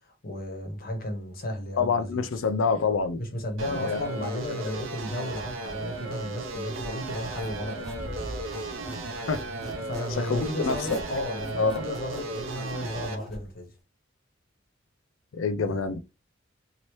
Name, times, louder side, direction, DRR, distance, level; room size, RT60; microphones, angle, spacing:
voice 1, 0.0-2.2 3.2-8.1 9.8-13.7 15.6-15.8, left 1 dB, 50° left, 1.0 m, -34 dB
voice 2, 1.8-3.2 3.8-4.3 9.3-9.4 10.1-11.0 11.6-11.9 15.3-16.0, left 4 dB, 85° left, 0.4 m, -27 dB
sound 1, 3.6-13.2, right 2 dB, 85° right, 0.7 m, -36 dB
Squeak, 6.5-9.0 9.3-13.4, equal, ahead, 0.9 m, -43 dB
sound 2, 7.8-13.5, right 1 dB, 55° right, 0.5 m, -46 dB
2.9 x 2.8 x 3.1 m
head